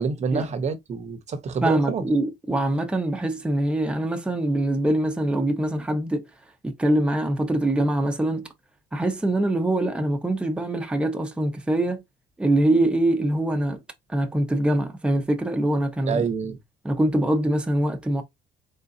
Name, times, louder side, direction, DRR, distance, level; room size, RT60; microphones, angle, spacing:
voice 1, 0.0-2.0 16.1-16.6, right 5 dB, 40° right, 0.9 m, -27 dB
voice 2, 1.6-6.2 6.6-8.5 8.9-12.0 12.4-13.8 14.1-16.2 16.8-18.2, right 1 dB, 5° right, 0.8 m, -23 dB
4.0 x 3.6 x 2.7 m
cardioid pair, 110°, 17 cm